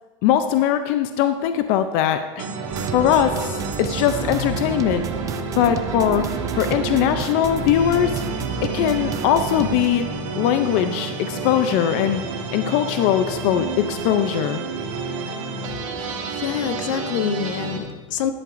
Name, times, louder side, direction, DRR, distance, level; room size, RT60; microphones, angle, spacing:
voice 1, 0.2-2.5 2.9-5.1 5.6-6.3 6.5-8.2 8.6-10.0 10.3-12.2 12.5-14.6, left 10 dB, 50° left, 9 dB, 0.5 m, -20 dB
sound 1, 2.4-17.8, right 4 dB, 85° right, 1.7 m, -30 dB
sound 2, 2.7-9.9, right 7 dB, 20° right, 0.5 m, -31 dB
voice 2, 16.0-18.3, left 8 dB, 75° left, 9 dB, 0.9 m, -26 dB
12.5 x 11.0 x 2.6 m, 1.3 s
supercardioid pair, 155°, 16 cm